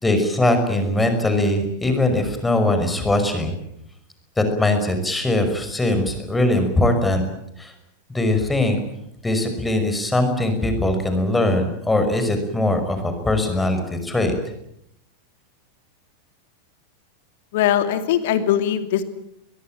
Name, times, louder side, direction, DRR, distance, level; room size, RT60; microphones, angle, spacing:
voice 1, 0.0-3.5 4.4-7.2 7.6-7.7 8.1-8.8 9.2-14.3, left 1 dB, 10° left, 7 dB, 5.7 m, -21 dB
voice 2, 17.5-19.0, left 10 dB, 55° left, 10 dB, 2.5 m, -20 dB
24.0 x 21.5 x 9.1 m, 0.79 s
figure-of-eight pair, 90°, 0 cm